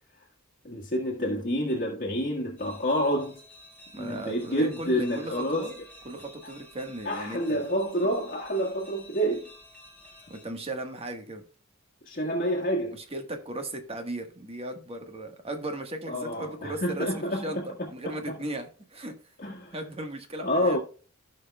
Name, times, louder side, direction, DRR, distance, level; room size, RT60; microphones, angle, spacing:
voice 1, 0.6-3.4 4.0-5.7 7.0-9.5 12.0-13.0 16.1-17.6 18.3-18.4 19.4-19.8 20.4-20.8, equal, 40° left, 1.6 m, -28 dB
sound 1, 2.6-10.5, left 1 dB, 5° left, 1.9 m, -51 dB
voice 2, 3.9-5.8 6.0-7.7 10.3-11.4 12.9-19.3 19.7-20.8, right 1 dB, 25° right, 1.4 m, -37 dB
16.0 x 5.5 x 2.3 m
head